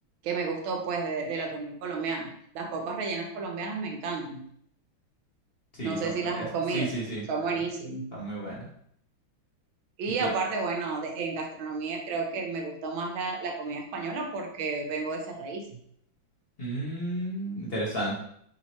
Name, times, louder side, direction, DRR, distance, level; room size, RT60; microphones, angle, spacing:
voice 1, 0.2-4.5 5.8-6.9 7.3-8.2 10.0-15.8, right 4 dB, 80° right, 2 dB, 1.5 m, -32 dB
voice 2, 5.7-6.5 6.7-7.3 8.1-8.7 10.2-10.3 16.6-18.2, right 1 dB, 40° left, -5 dB, 0.9 m, -32 dB
4.9 x 2.9 x 3.0 m, 0.68 s
omnidirectional pair, 2.2 m